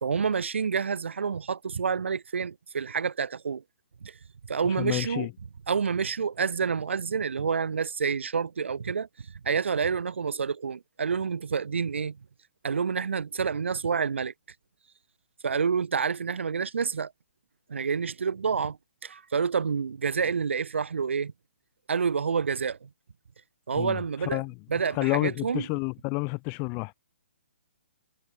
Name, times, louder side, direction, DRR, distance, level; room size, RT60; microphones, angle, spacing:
voice 1, 0.0-3.6 4.0-4.1 4.5-5.3 5.7-12.2 12.6-14.3 15.4-17.1 17.7-18.8 19.0-21.3 21.9-22.9 23.7-24.4 24.7-25.7, right 6 dB, 75° right, 1.3 m, -28 dB
voice 2, 4.8-5.3 23.8-24.0 24.3-24.5 24.9-26.9, left 32 dB, 30° left, 1.9 m, -29 dB
hypercardioid pair, 140°, 7 cm